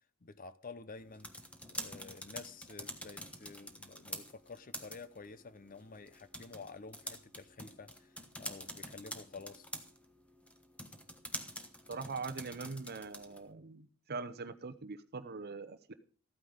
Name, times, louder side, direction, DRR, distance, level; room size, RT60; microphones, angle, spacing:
voice 1, 0.2-1.3 1.7-8.1 8.4-9.7, left 4 dB, 40° left, 0.7 m, -50 dB
sound 1, 1.0-13.5, left 1 dB, 5° left, 1.2 m, -47 dB
voice 2, 11.9-15.9, right 4 dB, 50° right, 0.8 m, -42 dB
14.0 x 9.2 x 5.0 m
head